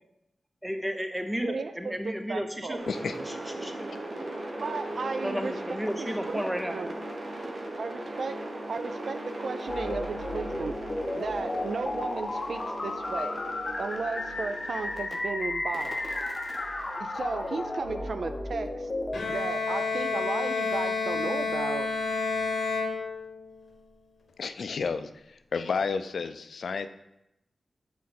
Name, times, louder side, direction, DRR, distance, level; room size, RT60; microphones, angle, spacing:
voice 1, 0.6-2.8 3.3-3.9 5.2-6.8, equal, 5° right, 6 dB, 0.6 m, -33 dB
voice 2, 1.4-2.8 4.6-6.9 7.8-8.4 8.7-10.8 11.1-13.4 13.8-16.0 17.0-18.9 19.3-21.9, right 4 dB, 65° right, 10 dB, 0.3 m, -35 dB
sound 1, 2.8-15.1 15.7-17.9, right 1 dB, 50° right, 0.9 m, -38 dB
sound 2, 9.7-19.2, left 2 dB, 35° left, 0.7 m, -33 dB
Bowed string instrument, 19.1-23.6, left 4 dB, 70° left, 0.9 m, -30 dB
voice 3, 24.4-25.1 25.5-26.9, left 5 dB, 85° left, 10 dB, 0.3 m, -31 dB
6.4 x 4.0 x 4.2 m, 0.86 s
wide cardioid pair, 120°, 0 cm